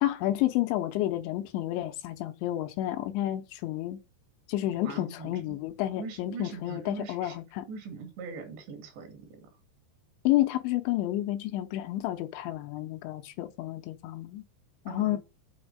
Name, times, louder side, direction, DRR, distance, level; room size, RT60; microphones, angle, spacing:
voice 1, 0.0-4.0 4.5-7.7 10.2-14.4 14.9-15.2, left 14 dB, 80° left, 2.9 m, -30 dB
voice 2, 4.8-5.6 6.0-7.4 7.7-9.5 14.9-15.2, right 4 dB, 65° right, 4.2 m, -41 dB
8.7 x 4.3 x 6.4 m
omnidirectional pair, 5.5 m